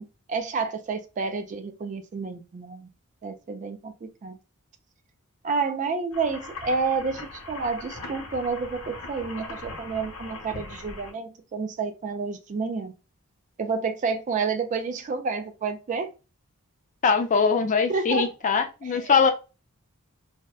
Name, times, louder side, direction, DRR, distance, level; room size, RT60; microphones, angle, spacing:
voice 1, 0.0-2.9 3.2-4.4 5.4-12.9 13.6-16.1 17.9-18.3 18.9-19.3, right 4 dB, 35° right, 0.3 m, -30 dB
sound 1, 6.1-11.1, left 2 dB, 70° left, 0.9 m, -40 dB
voice 2, 17.0-19.3, left 5 dB, 35° left, 0.4 m, -22 dB
2.7 x 2.1 x 2.2 m
head